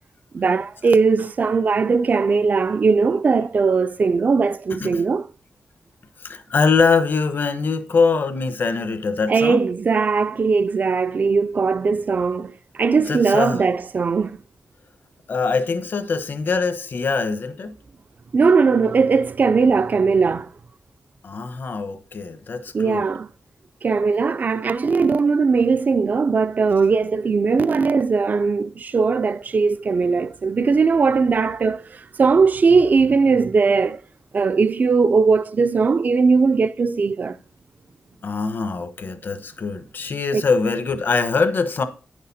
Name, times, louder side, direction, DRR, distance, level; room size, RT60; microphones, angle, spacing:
voice 1, 0.3-5.3 9.3-12.5 12.8-14.4 18.3-20.5 22.7-23.3 23.8-31.8 32.2-34.0 34.3-37.4 40.3-40.4, right 4 dB, 45° right, 0.4 m, -19 dB
voice 2, 6.2-9.6 13.0-13.6 15.3-17.7 21.2-23.0 38.2-41.8, left 4 dB, 60° left, 1.1 m, -23 dB
9.8 x 6.6 x 4.2 m
wide cardioid pair, 120°, 4 cm